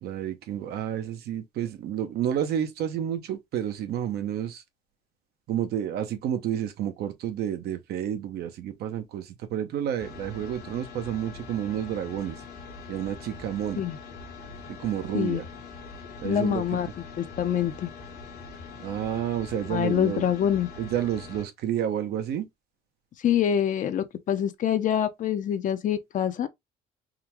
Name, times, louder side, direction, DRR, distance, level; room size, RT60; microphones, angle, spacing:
voice 1, 0.0-4.6 5.5-12.4 12.9-13.8 14.7-15.5 16.2-16.6 18.8-20.2 20.8-22.5, right 10 dB, 70° right, 0.9 m, -30 dB
sound 1, 10.0-21.5, left 4 dB, 75° left, 1.3 m, -43 dB
voice 2, 16.2-16.9 17.2-17.9 19.7-20.7 23.2-26.5, left 9 dB, 50° left, 0.6 m, -25 dB
3.7 x 2.2 x 3.0 m
cardioid pair, 110°, 17 cm